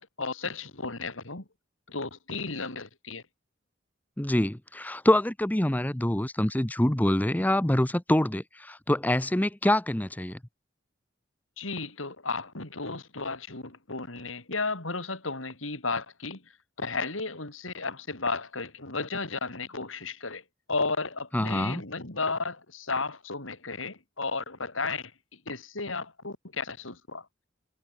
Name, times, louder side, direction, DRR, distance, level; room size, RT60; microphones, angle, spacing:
voice 1, 0.0-1.4 1.9-3.2 11.6-16.4 16.8-20.4 20.7-25.1 25.5-27.3, left 3 dB, 90° left, 4.5 m, -33 dB
voice 2, 4.2-10.4 21.3-21.8, left 1 dB, 10° left, 0.7 m, -25 dB
head